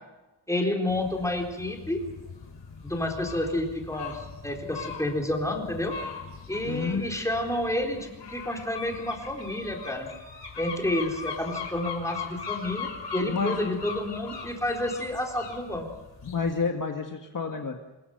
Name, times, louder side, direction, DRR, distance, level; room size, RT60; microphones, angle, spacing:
voice 1, 0.5-2.0 2.8-5.9 6.5-10.1 10.6-15.9, left 1 dB, 5° left, 1 dB, 4.0 m, -30 dB
sound 1, 0.9-16.7, left 5 dB, 60° left, 4.8 m, -40 dB
voice 2, 6.6-7.0 13.3-13.6 16.2-17.8, left 4 dB, 45° left, 3 dB, 1.8 m, -29 dB
25.0 x 22.0 x 6.7 m, 1.1 s
wide cardioid pair, 155°, 46 cm